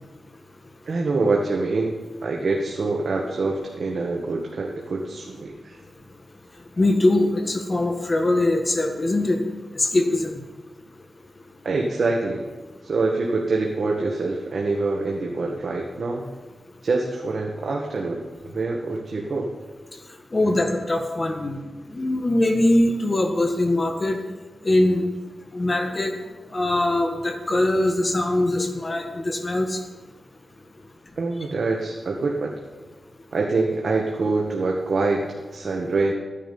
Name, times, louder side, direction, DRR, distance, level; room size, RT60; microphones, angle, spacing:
voice 1, 0.8-5.8 11.6-12.5 12.8-16.3 16.8-19.5 20.4-20.5 31.2-32.5 33.3-36.1, right 3 dB, 65° right, -1 dB, 1.6 m, -25 dB
voice 2, 6.8-9.4 9.7-10.4 20.3-21.6 21.9-24.2 24.6-25.0 25.5-26.1 26.5-29.8, left 1 dB, 35° left, 4 dB, 1.6 m, -22 dB
15.0 x 10.0 x 5.5 m, 1.3 s
wide cardioid pair, 95°, 0 cm